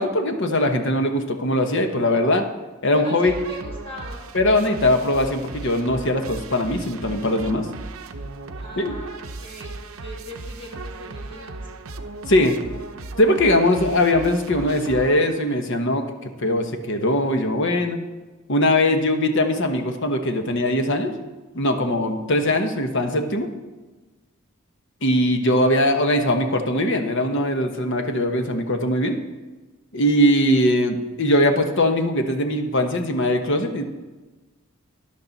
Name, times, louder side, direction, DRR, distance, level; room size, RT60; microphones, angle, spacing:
voice 1, 0.0-2.4 2.8-3.3 4.3-7.7 8.8-8.9 12.3-12.5 13.2-18.0 18.5-21.1 21.5-23.5 25.0-29.2 29.9-33.8, left 1 dB, 55° left, 6 dB, 1.1 m, -21 dB
voice 2, 2.9-4.3 8.6-11.7 13.4-13.5 25.4-25.6, equal, 25° left, -2 dB, 2.4 m, -40 dB
sound 1, 3.2-15.6, right 2 dB, 70° right, 0.8 m, -37 dB
13.0 x 10.5 x 4.1 m, 1.2 s
head